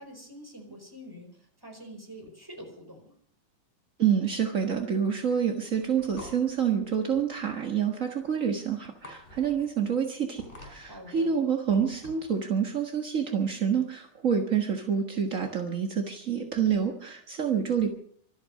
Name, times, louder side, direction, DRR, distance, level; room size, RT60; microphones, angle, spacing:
voice 1, 0.0-3.1 10.9-11.3, equal, 5° right, 3 dB, 4.4 m, -46 dB
voice 2, 4.0-17.9, right 7 dB, 45° right, 3 dB, 1.0 m, -27 dB
sound 1, 5.5-12.4, left 1 dB, 15° left, 4.5 m, -49 dB
25.0 x 9.0 x 6.4 m, 0.62 s
omnidirectional pair, 3.9 m